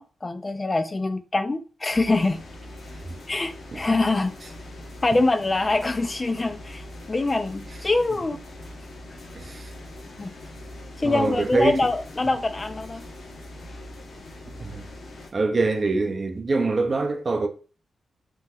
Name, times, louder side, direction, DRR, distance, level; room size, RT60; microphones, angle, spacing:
voice 1, 0.0-2.4 3.3-4.3 5.0-8.4 10.2-10.3 11.0-13.0, left 2 dB, 30° left, 0.3 m, -24 dB
sound 1, 1.9-15.3, left 1 dB, 70° left, 0.8 m, -42 dB
voice 2, 9.3-9.7 11.0-11.8 14.6-14.9 15.3-17.5, right 3 dB, 45° right, 0.5 m, -24 dB
2.9 x 2.1 x 3.6 m
cardioid pair, 70°, 0 cm